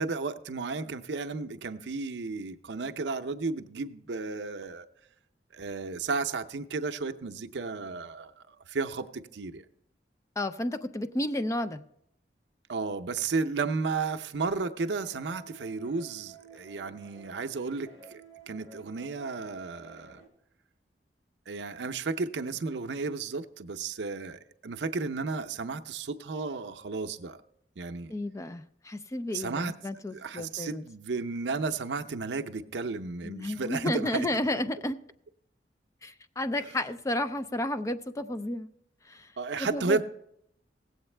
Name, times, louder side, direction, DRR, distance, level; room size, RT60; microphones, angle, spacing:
voice 1, 0.0-4.9 5.5-9.6 12.7-18.2 18.5-20.2 21.5-27.4 27.8-28.1 29.3-29.7 30.1-34.5 39.4-40.0, right 4 dB, 80° right, 0.6 m, -33 dB
voice 2, 10.4-11.8 28.1-30.9 33.2-35.0 36.0-38.7 39.0-39.3 39.6-40.0, left 1 dB, 20° left, 0.4 m, -32 dB
sound 1, 14.8-20.3, right 5 dB, 80° left, 2.2 m, -52 dB
17.0 x 7.9 x 3.3 m
head